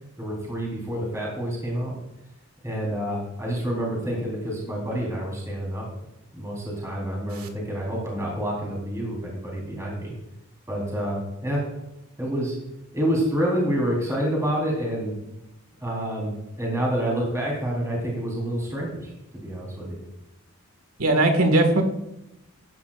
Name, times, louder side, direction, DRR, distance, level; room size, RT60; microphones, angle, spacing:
voice 1, 0.2-1.9 2.6-5.9 6.3-10.1 10.7-11.6 12.2-12.5 12.9-15.1 15.8-20.0, equal, 15° right, -3 dB, 3.8 m, -28 dB
voice 2, 21.0-21.8, right 2 dB, 85° right, 5 dB, 1.8 m, -19 dB
15.0 x 10.5 x 2.5 m, 0.89 s
head